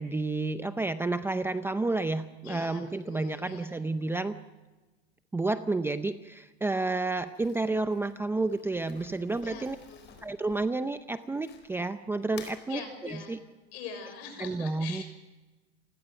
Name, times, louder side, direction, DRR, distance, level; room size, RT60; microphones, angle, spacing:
voice 1, 0.0-4.4 5.3-9.8 10.2-13.4 14.4-15.0, right 3 dB, 5° right, 10 dB, 0.6 m, -30 dB
voice 2, 2.4-3.7 9.4-10.1 12.7-13.3 13.7-15.0, left 6 dB, 75° left, 6 dB, 6.3 m, -43 dB
Crumpling crinkling, 7.3-11.9 12.2-12.6, left 7 dB, 35° left, 4.3 m, -52 dB
29.0 x 16.5 x 6.5 m, 1.2 s
supercardioid pair, 135°, 31 cm